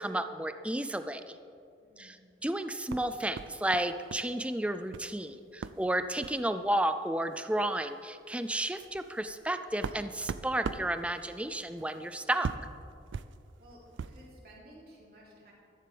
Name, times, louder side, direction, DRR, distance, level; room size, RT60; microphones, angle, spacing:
voice 1, 0.0-1.4 2.0-12.5, right 1 dB, 5° right, 9 dB, 0.4 m, -32 dB
voice 2, 1.8-2.2 13.6-15.5, equal, 55° right, -5 dB, 3.4 m, -55 dB
sound 1, 2.9-4.3 4.6-5.1 5.6-5.8 6.2-6.4 7.3-7.4 7.8-7.9 8.4-14.3, right 5 dB, 90° right, 0.4 m, -41 dB
14.0 x 13.5 x 3.5 m, 2.5 s
head